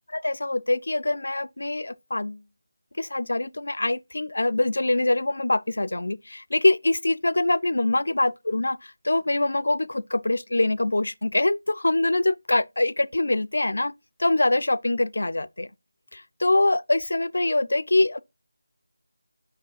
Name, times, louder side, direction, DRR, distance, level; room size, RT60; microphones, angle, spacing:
voice 1, 0.1-2.4 3.0-13.9 14.2-15.7 16.1-18.2, left 2 dB, 65° left, 0.4 m, -24 dB
7.4 x 6.0 x 2.4 m
figure-of-eight pair, 160°, 0 cm